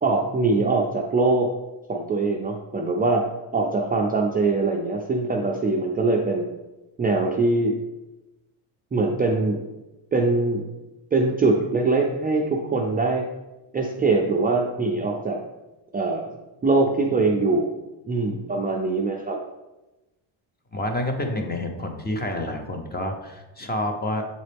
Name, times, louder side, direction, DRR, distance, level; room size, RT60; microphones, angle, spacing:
voice 1, 0.0-1.5 1.9-3.2 3.5-6.5 7.0-7.7 8.9-9.6 10.1-10.6 11.1-13.2 13.7-15.4 15.9-16.3 16.6-17.7 18.1-19.4, right 3 dB, 20° right, 0 dB, 0.4 m, -22 dB
voice 2, 20.7-24.3, left 1 dB, 20° left, 4 dB, 0.7 m, -28 dB
7.5 x 3.9 x 3.4 m, 1.1 s
cardioid pair, 115°, 48 cm